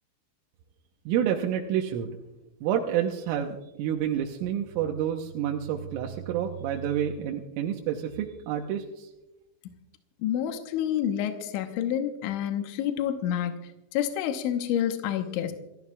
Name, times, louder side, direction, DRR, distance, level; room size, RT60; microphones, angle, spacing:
voice 1, 1.1-2.1 2.6-9.1, right 9 dB, 90° right, 1 dB, 3.5 m, -29 dB
voice 2, 10.2-15.5, left 10 dB, 80° left, 6 dB, 3.3 m, -28 dB
28.0 x 15.0 x 2.4 m, 0.96 s
omnidirectional pair, 5.7 m